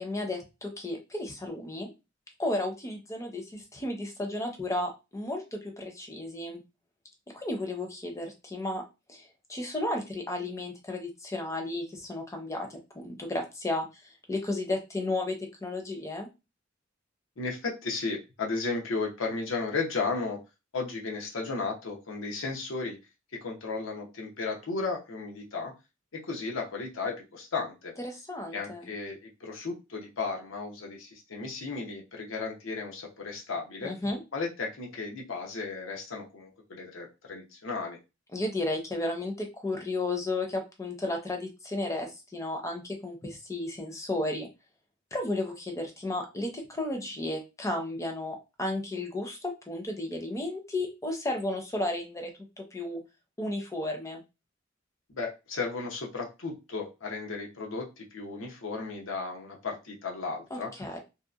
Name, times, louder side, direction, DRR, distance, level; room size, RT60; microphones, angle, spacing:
voice 1, 0.0-1.9 2.4-6.6 7.3-8.8 9.1-13.9 14.3-16.3 28.0-28.9 33.8-34.2 38.3-44.5 45.1-52.3 52.6-53.0 53.4-54.2 60.5-61.0, left 2 dB, 15° left, 2 dB, 0.5 m, -33 dB
voice 2, 17.4-20.4 20.7-23.0 23.4-25.7 26.1-27.9 28.5-33.9 34.3-38.0 55.1-60.7, left 4 dB, 90° left, 0 dB, 0.7 m, -34 dB
2.7 x 2.1 x 2.4 m, 0.26 s
head